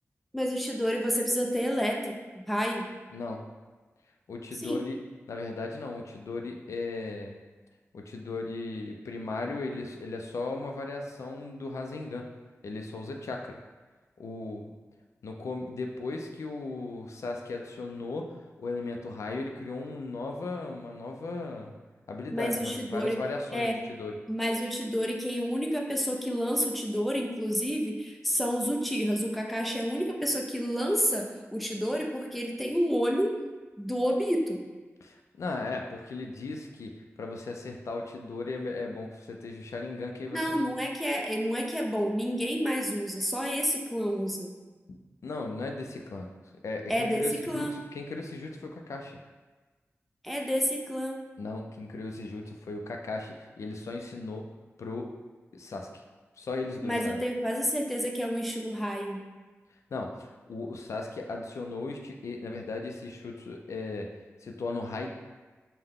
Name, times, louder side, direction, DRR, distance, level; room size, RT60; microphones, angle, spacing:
voice 1, 0.3-2.9 4.6-4.8 22.3-23.2 23.5-23.7 24.3-33.3 33.8-34.6 40.3-44.5 46.9-47.7 50.2-51.2 56.8-59.2, equal, ahead, 0 dB, 0.5 m, -29 dB
voice 2, 3.1-3.5 4.3-5.0 5.3-7.4 7.9-12.3 12.6-13.6 14.2-14.7 15.2-21.7 22.1-24.2 35.0-40.7 44.9-45.0 45.2-46.3 46.6-49.2 51.4-54.5 54.8-55.1 55.5-55.9 56.4-57.2 59.9-64.1 64.4-65.1, left 3 dB, 85° left, 2 dB, 0.4 m, -37 dB
5.6 x 2.1 x 3.5 m, 1.3 s
wide cardioid pair, 105°, 5 cm